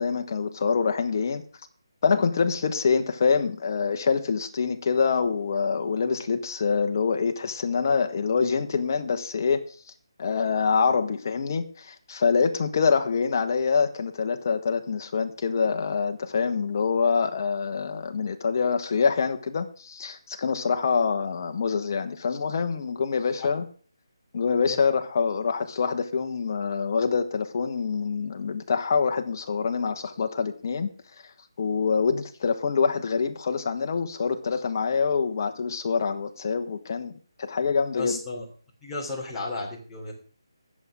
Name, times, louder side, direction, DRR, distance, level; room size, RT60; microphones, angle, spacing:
voice 1, 0.0-1.4 2.0-9.6 10.2-23.7 24.3-30.9 31.6-37.1 37.4-38.2, left 5 dB, 40° left, 6 dB, 1.5 m, -25 dB
voice 2, 37.9-38.4 38.8-40.1, left 3 dB, 10° left, -5 dB, 3.5 m, -34 dB
22.0 x 7.7 x 3.7 m, 0.42 s
figure-of-eight pair, 160°, 2 cm